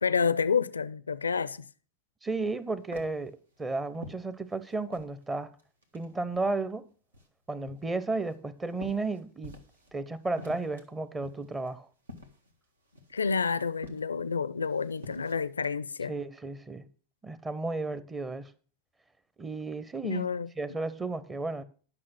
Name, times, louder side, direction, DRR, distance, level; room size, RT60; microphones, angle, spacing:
voice 1, 0.0-1.7 13.1-16.1 20.0-20.5, left 5 dB, 75° left, 0.4 m, -29 dB
voice 2, 2.2-5.5 5.9-6.9 7.5-9.6 9.9-11.9 16.1-16.9 17.2-18.5 19.4-20.3 20.6-21.6, right 3 dB, 15° right, 0.8 m, -33 dB
sound 1, 2.5-5.2 5.6-6.7 7.1-10.0 10.2-15.7, left 1 dB, 75° right, 1.5 m, -49 dB
10.5 x 6.2 x 6.0 m
figure-of-eight pair, 90°, 0 cm